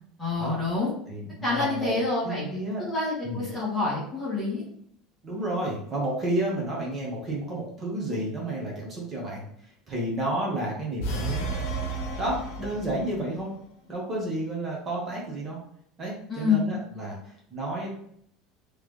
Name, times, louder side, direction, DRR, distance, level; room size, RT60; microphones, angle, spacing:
voice 1, 0.2-0.9 1.4-2.4 2.8-4.6 16.3-16.7, left 3 dB, 15° left, -7 dB, 1.5 m, -27 dB
voice 2, 1.1-1.9 2.2-2.8 3.2-3.4 5.2-9.5 9.9-11.5 12.2-13.5 13.9-15.6 16.0-17.2 17.5-17.9, right 1 dB, 20° right, -3 dB, 1.1 m, -31 dB
sound 1, 11.0-13.3, right 2 dB, 65° left, 1.0 m, -32 dB
3.7 x 3.3 x 3.2 m, 0.68 s
cardioid pair, 165°, 0 cm